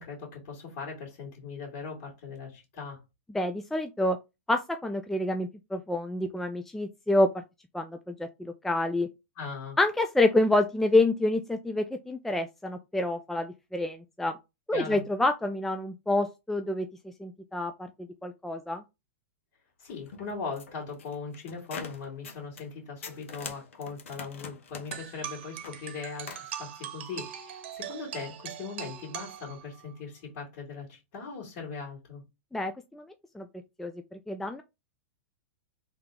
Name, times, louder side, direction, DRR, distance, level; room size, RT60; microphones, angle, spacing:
voice 1, 0.0-3.0 9.4-9.8 14.7-15.0 19.8-32.2, left 5 dB, 50° left, 2.2 m, -39 dB
voice 2, 3.3-4.2 4.5-7.4 7.7-9.1 9.8-14.4 14.7-17.9 18.2-18.8 32.5-33.1 33.3-33.5 33.8-34.6, left 2 dB, 5° left, 0.4 m, -28 dB
sound 1, 19.9-22.7 23.0-26.5, left 5 dB, 80° left, 1.0 m, -44 dB
sound 2, 24.9-29.9, right 10 dB, 60° right, 0.9 m, -41 dB
3.6 x 2.9 x 3.5 m
hypercardioid pair, 115°, 7 cm